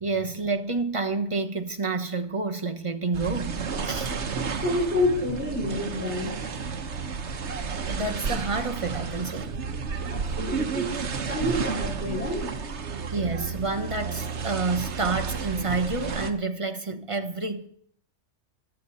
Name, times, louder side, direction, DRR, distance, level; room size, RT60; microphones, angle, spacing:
voice 1, 0.0-4.1 7.9-9.5 13.1-17.7, right 3 dB, 30° right, 1.2 m, -29 dB
sound 1, 3.1-16.3, right 5 dB, 70° right, 1.4 m, -32 dB
voice 2, 4.6-6.4 10.1-11.0 11.3-12.5, left 1 dB, 10° right, 5.9 m, -28 dB
24.5 x 8.3 x 4.2 m
omnidirectional pair, 1.2 m